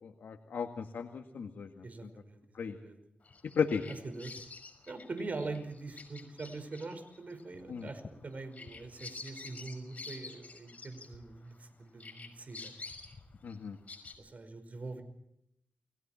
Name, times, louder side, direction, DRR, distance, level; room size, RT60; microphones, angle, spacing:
voice 1, 0.0-2.1 2.5-2.8 3.6-3.8 7.7-7.9 13.4-13.8, left 6 dB, 80° left, 4 dB, 2.0 m, -35 dB
voice 2, 1.8-2.4 2.8-3.0 3.9-4.3 4.9-12.7 14.2-15.0, right 3 dB, 50° right, 10 dB, 5.2 m, -43 dB
Bird vocalization bird call bird song, 3.2-11.7 12.0-14.1, left 4 dB, 45° left, 6.1 m, -49 dB
30.0 x 22.0 x 4.5 m, 0.81 s
cardioid pair, 80°, 3 cm